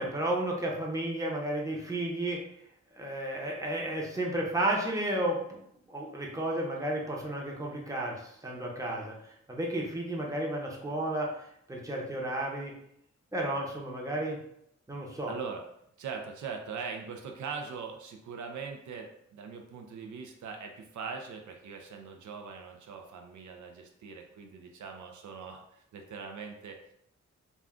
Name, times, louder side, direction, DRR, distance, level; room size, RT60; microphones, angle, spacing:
voice 1, 0.0-2.4 3.0-5.6 5.9-12.7 13.3-14.4 14.9-15.3, right 1 dB, 10° right, -2 dB, 0.7 m, -32 dB
voice 2, 15.3-15.6 16.0-26.8, right 5 dB, 85° right, 3 dB, 0.5 m, -41 dB
2.4 x 2.2 x 3.6 m, 0.73 s
cardioid pair, 80°, 29 cm